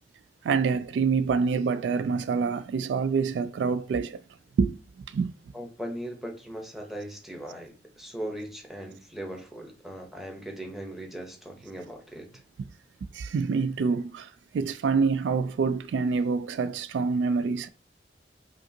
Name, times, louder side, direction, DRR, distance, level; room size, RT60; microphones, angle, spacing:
voice 1, 0.4-4.2 4.6-5.3 13.1-17.7, right 5 dB, 90° right, 0.3 m, -26 dB
voice 2, 5.5-12.3, right 1 dB, ahead, 0.8 m, -39 dB
5.2 x 2.4 x 2.7 m
head